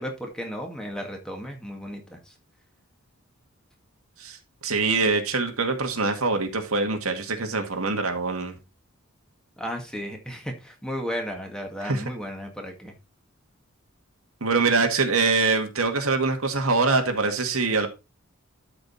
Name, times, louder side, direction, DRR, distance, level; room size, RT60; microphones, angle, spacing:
voice 1, 0.0-2.3 9.6-12.9, equal, 5° left, 2.0 m, -34 dB
voice 2, 4.6-8.6 11.8-12.0 14.4-17.9, right 4 dB, 75° right, 1.9 m, -24 dB
12.5 x 5.2 x 4.2 m
head